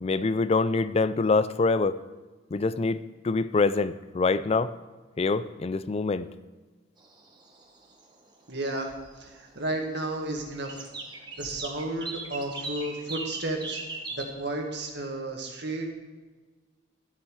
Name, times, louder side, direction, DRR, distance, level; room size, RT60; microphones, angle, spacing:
voice 1, 0.0-2.0 2.5-4.7 5.2-6.3, left 3 dB, 30° left, 15 dB, 0.4 m, -25 dB
sound 1, 7.0-8.2 8.5-8.8 9.0-9.9 10.3-14.2, right 3 dB, 25° right, 1.3 m, -38 dB
voice 2, 8.5-8.9 9.2-10.9 11.4-13.8 14.1-15.9, right 2 dB, 60° right, 2 dB, 1.8 m, -32 dB
12.5 x 8.8 x 4.8 m, 1.3 s
head